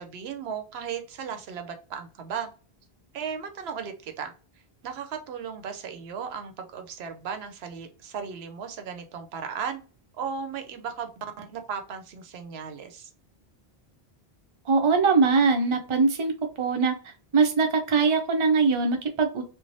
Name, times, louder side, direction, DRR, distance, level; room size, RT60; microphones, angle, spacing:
voice 1, 0.0-2.5 3.1-4.3 4.8-9.8 10.1-13.1, right 7 dB, 80° right, 7 dB, 0.8 m, -36 dB
voice 2, 14.7-16.3 16.6-16.9 17.3-19.4, right 4 dB, 35° right, 4 dB, 0.5 m, -22 dB
3.2 x 2.1 x 2.6 m, 0.35 s
omnidirectional pair, 1.0 m